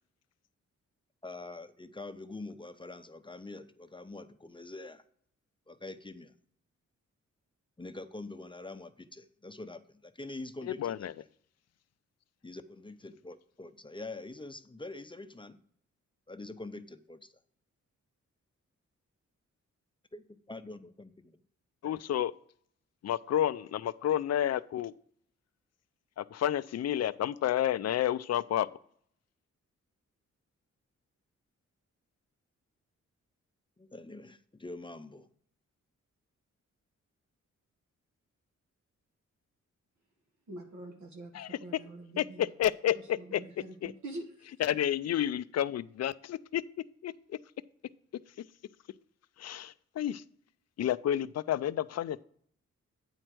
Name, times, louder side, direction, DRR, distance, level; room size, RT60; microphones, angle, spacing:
voice 1, 1.2-5.0 5.7-6.3 7.8-11.1 12.4-15.6 16.3-17.3 20.1-21.4 33.8-35.3, left 2 dB, 15° left, 9 dB, 0.6 m, -45 dB
voice 2, 10.7-11.1 21.8-22.3 23.0-24.9 26.2-28.7 41.3-41.5 42.2-43.4 43.8-43.9 44.6-46.6 47.0-47.4 49.4-50.2 50.8-52.2, left 11 dB, 60° left, 14 dB, 0.4 m, -30 dB
voice 3, 40.5-42.5 42.9-44.5, right 2 dB, 70° right, 2 dB, 1.6 m, -45 dB
9.0 x 4.4 x 6.1 m, 0.63 s
cardioid pair, 70°, 30 cm